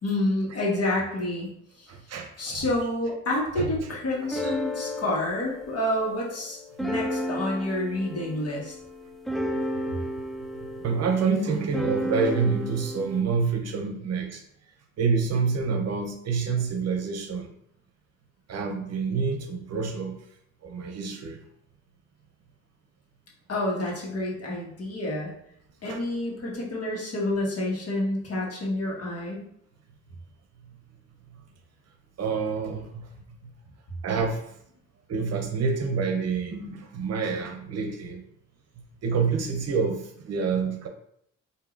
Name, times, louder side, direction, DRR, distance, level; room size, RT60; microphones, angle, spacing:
voice 1, 0.0-1.5 1.8-1.9 2.4-8.7 23.5-25.3 25.8-29.5, left 1 dB, 55° left, -3 dB, 1.4 m, -28 dB
voice 2, 1.9-2.6 3.5-3.7 4.4-4.5 10.8-14.4 15.0-17.5 18.5-20.2 20.6-21.4 25.8-26.0 32.2-33.1 34.0-34.4 35.1-38.2 39.0-40.9, right 5 dB, 55° right, 4 dB, 0.7 m, -27 dB
sound 1, 4.1-13.2, equal, ahead, 0.3 m, -33 dB
4.7 x 2.7 x 2.5 m, 0.70 s
cardioid pair, 90°, 30 cm